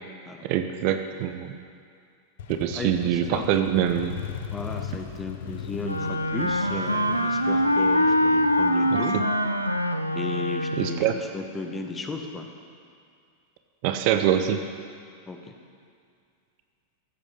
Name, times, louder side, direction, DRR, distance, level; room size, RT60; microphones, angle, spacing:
voice 1, 0.4-1.5 2.6-4.2 8.9-9.2 10.8-11.1 13.8-14.6, right 10 dB, 45° right, 8 dB, 0.7 m, -24 dB
Motorcycle, 2.4-10.0, left 8 dB, 55° left, 0.8 m, -39 dB
voice 2, 2.7-3.5 4.5-9.2 10.1-12.5 15.3-15.6, left 3 dB, 15° left, 4 dB, 1.2 m, -35 dB
Wind instrument woodwind instrument, 5.8-11.2, equal, 90° left, 0.5 m, -24 dB
15.0 x 8.1 x 5.6 m, 2.3 s
figure-of-eight pair, 90°, 0 cm